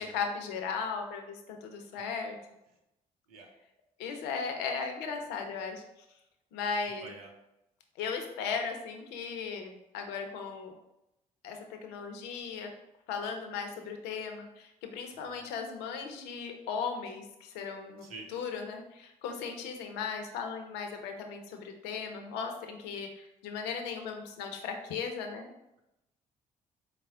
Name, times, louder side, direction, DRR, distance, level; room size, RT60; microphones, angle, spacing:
voice 1, 0.0-2.4 4.0-5.8 6.5-7.1 8.0-10.7 11.4-12.7 13.1-18.1 18.3-25.5, left 5 dB, 65° left, 4 dB, 0.6 m, -37 dB
voice 2, 7.0-7.3 15.1-15.5 18.0-18.3, right 3 dB, 80° right, 2 dB, 0.6 m, -48 dB
4.2 x 2.0 x 3.5 m, 0.89 s
figure-of-eight pair, 45°, 18 cm